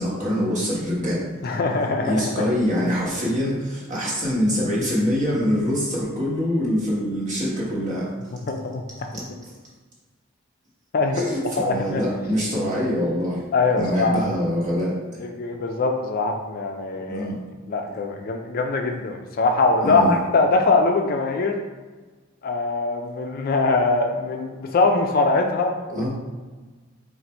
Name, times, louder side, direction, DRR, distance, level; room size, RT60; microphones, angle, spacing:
voice 1, 0.0-1.2 2.0-8.1 9.1-9.2 11.1-13.4 13.8-15.2 17.1-17.3 19.8-20.2 25.9-26.1, equal, 35° right, -6 dB, 1.3 m, -24 dB
voice 2, 1.4-2.3 8.5-9.2 10.9-11.2 11.6-12.0 13.5-14.3 15.2-17.3 17.7-21.6 22.4-26.0, left 3 dB, 45° left, 3 dB, 0.4 m, -22 dB
4.0 x 2.5 x 4.3 m, 1.3 s
head